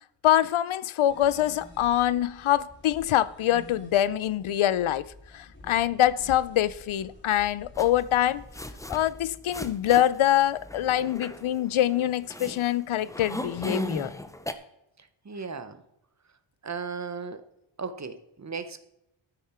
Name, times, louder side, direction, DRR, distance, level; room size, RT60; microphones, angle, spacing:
voice 1, 0.2-5.0 5.3-8.4 8.9-14.1, left 12 dB, 75° left, 0.6 m, -24 dB
sound 1, 1.1-9.1, left 1 dB, 20° left, 3.5 m, -50 dB
sound 2, 7.7-14.5, left 1 dB, 5° left, 0.6 m, -37 dB
voice 2, 15.2-15.8 16.6-17.4 17.8-18.8, right 5 dB, 35° right, 0.9 m, -36 dB
13.0 x 9.4 x 4.4 m
wide cardioid pair, 150°, 49 cm